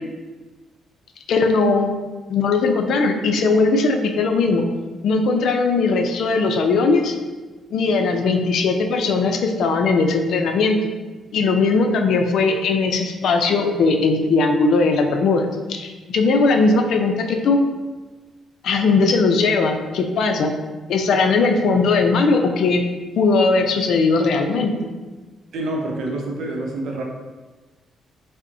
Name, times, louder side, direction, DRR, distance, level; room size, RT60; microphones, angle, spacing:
voice 1, 1.3-1.9 2.3-4.7 5.0-7.1 7.7-10.8 11.3-17.6 18.6-20.5 20.9-22.8 23.2-24.9, left 3 dB, 70° left, 4 dB, 0.4 m, -19 dB
voice 2, 25.5-27.0, right 2 dB, 70° right, 0 dB, 0.6 m, -27 dB
5.2 x 2.1 x 2.6 m, 1.3 s
cardioid pair, 90°, 0 cm